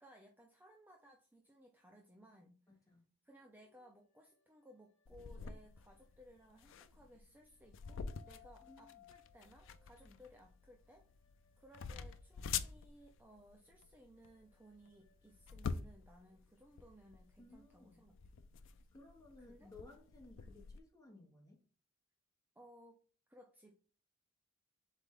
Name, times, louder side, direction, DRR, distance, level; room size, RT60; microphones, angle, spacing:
voice 1, 0.0-2.6 3.2-11.1 11.6-18.2 19.4-19.7 22.6-23.0 23.3-23.8, equal, 10° right, 0.4 m, -61 dB
voice 2, 2.7-3.0 8.6-9.1 10.0-10.2 17.4-18.0 18.9-21.6, left 2 dB, 15° left, 1.3 m, -59 dB
sound 1, 3.4-6.9 7.4-12.6 13.0-18.6, left 11 dB, 35° left, 1.8 m, -70 dB
sound 2, 5.1-20.8, left 6 dB, 60° left, 0.4 m, -47 dB
4.0 x 3.3 x 3.6 m
head